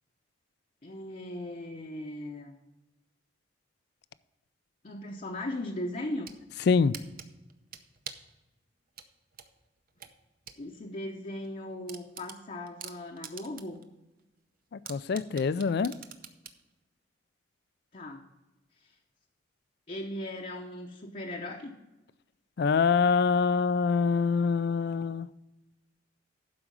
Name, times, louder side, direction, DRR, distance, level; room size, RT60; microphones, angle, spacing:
voice 1, 0.8-2.5 4.8-6.3 10.6-13.8 17.9-18.3 19.9-21.8, left 1 dB, 40° left, 1 dB, 0.8 m, -38 dB
sound 1, 6.0-6.4 6.9-8.3 9.0-10.6 11.0-11.1 11.4-11.5 11.9-13.8 14.2-14.3 14.9-16.6, right 8 dB, 50° right, 0.7 m, -44 dB
voice 2, 14.9-15.9 22.6-25.3, left 5 dB, 60° left, 17 dB, 0.4 m, -25 dB
12.0 x 5.0 x 5.2 m, 1.0 s
head